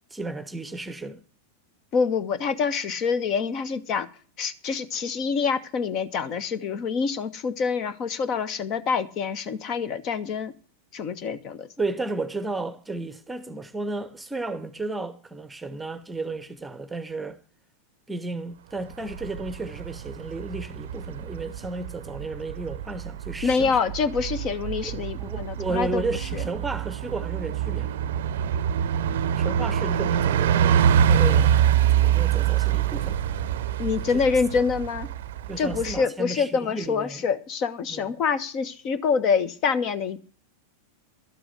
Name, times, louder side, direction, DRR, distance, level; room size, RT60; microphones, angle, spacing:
voice 1, 0.1-1.2 11.8-17.4 18.1-23.8 24.8-28.0 29.4-30.8 31.0-31.5 31.9-33.2 34.6-34.7 35.5-37.2 37.9-38.1, right 3 dB, 10° right, 1.0 m, -33 dB
voice 2, 1.9-4.1 4.4-10.5 10.9-11.7 23.4-26.0 26.3-26.4 33.8-35.1 35.6-40.2, left 5 dB, 35° left, 1.3 m, -26 dB
Bus, 18.9-36.0, right 9 dB, 55° right, 0.7 m, -25 dB
12.5 x 7.7 x 8.2 m
figure-of-eight pair, 90°, 0 cm